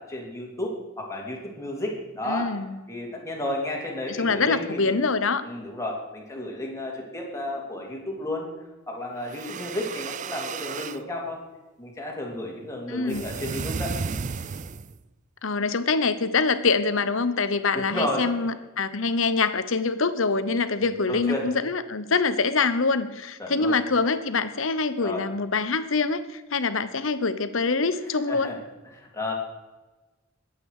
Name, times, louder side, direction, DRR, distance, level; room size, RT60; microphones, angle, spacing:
voice 1, 0.0-2.5 2.9-4.9 5.4-8.5 8.9-11.4 11.8-14.3 17.7-18.3 21.1-21.5 23.4-23.8 25.0-25.2 28.3-28.6 28.9-29.3, left 1 dB, 15° left, -1 dB, 3.0 m, -32 dB
voice 2, 2.3-2.8 4.2-5.4 12.9-13.2 15.4-28.5, left 4 dB, 65° left, 12 dB, 1.0 m, -25 dB
sound 1, 9.2-11.0 13.1-15.0, right 5 dB, 35° right, 0.4 m, -33 dB
21.0 x 8.5 x 5.0 m, 1.2 s
head